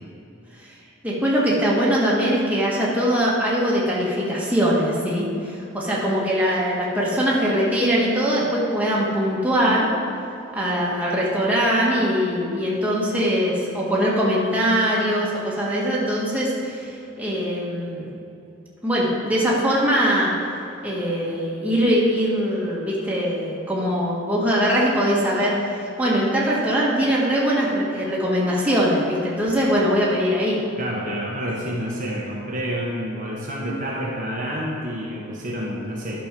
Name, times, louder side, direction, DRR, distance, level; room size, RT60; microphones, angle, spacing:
voice 1, 1.0-9.9 10.5-16.9 17.2-18.1 18.8-20.3 20.8-30.6, equal, 5° right, -6 dB, 1.6 m, -22 dB
voice 2, 30.8-36.3, equal, 40° right, -4 dB, 1.1 m, -28 dB
11.0 x 6.2 x 5.2 m, 2.7 s
head